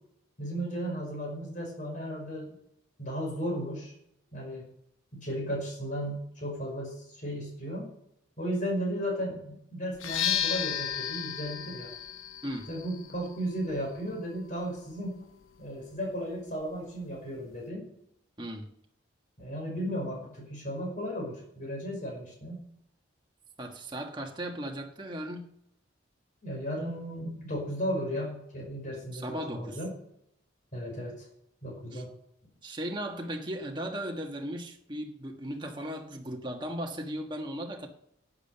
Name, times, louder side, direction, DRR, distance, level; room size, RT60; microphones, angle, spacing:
voice 1, 0.4-2.6 3.0-3.9 4.3-4.7 5.1-7.9 8.4-11.9 12.7-15.2 15.6-17.9 19.4-22.6 26.4-29.9 30.7-31.3 31.6-32.1, equal, 40° left, 5.3 m, -35 dB
sound 1, 9.9-17.7, left 9 dB, 85° left, 0.8 m, -36 dB
voice 2, 18.4-18.7 23.6-25.4 29.1-29.8 31.9-32.0 32.6-37.9, right 1 dB, 20° right, 1.4 m, -37 dB
11.5 x 8.5 x 6.7 m
head